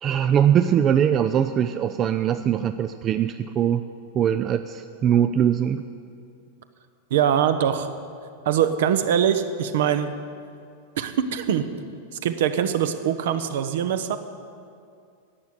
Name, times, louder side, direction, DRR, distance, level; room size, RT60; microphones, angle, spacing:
voice 1, 0.0-3.8 4.1-5.8, right 9 dB, 30° right, 10 dB, 0.4 m, -21 dB
voice 2, 7.1-7.9 8.4-10.1 11.0-11.7 12.1-14.2, right 9 dB, 55° right, 10 dB, 0.8 m, -23 dB
11.0 x 8.2 x 9.2 m, 2.4 s
figure-of-eight pair, 90°, 0 cm